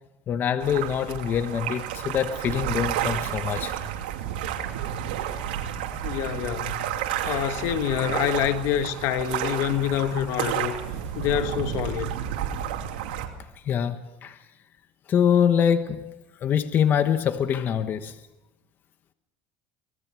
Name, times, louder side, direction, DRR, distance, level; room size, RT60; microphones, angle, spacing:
voice 1, 0.3-3.7 13.6-14.4 15.1-16.1 16.4-18.2, left 8 dB, 40° left, 1.1 m, -24 dB
sound 1, 0.6-13.3, right 10 dB, 90° right, 2.7 m, -31 dB
voice 2, 6.0-6.9 7.2-10.7 11.1-12.2, left 10 dB, 65° left, 1.6 m, -26 dB
25.0 x 19.0 x 6.3 m
supercardioid pair, 110°, 5 cm